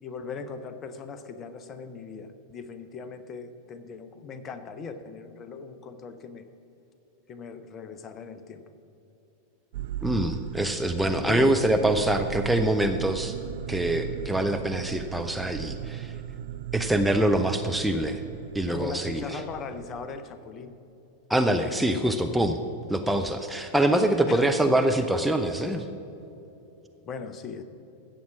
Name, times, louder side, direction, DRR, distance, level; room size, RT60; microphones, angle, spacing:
voice 1, 0.0-6.5 7.3-8.6 11.1-11.5 18.7-20.7 24.3-24.5 27.0-27.6, left 5 dB, 30° left, 11 dB, 0.8 m, -39 dB
sound 1, 9.7-20.2, right 10 dB, 55° right, 0.4 m, -37 dB
voice 2, 10.0-13.3 13.7-16.1 16.7-18.2 18.5-19.4 21.3-22.6 22.9-25.8, right 1 dB, 5° right, 5 dB, 0.6 m, -24 dB
15.5 x 7.3 x 6.1 m, 2.9 s
figure-of-eight pair, 90°, 0 cm